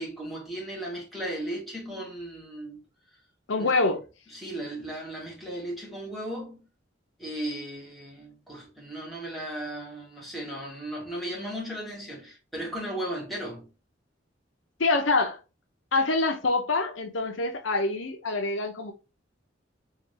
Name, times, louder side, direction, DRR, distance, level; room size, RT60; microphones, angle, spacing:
voice 1, 0.0-2.8 3.6-3.7 4.3-6.7 7.2-13.7, right 1 dB, ahead, 2.0 m, -36 dB
voice 2, 3.5-4.0 14.8-15.4 15.9-18.9, left 3 dB, 90° left, 0.8 m, -25 dB
3.8 x 3.2 x 3.2 m
head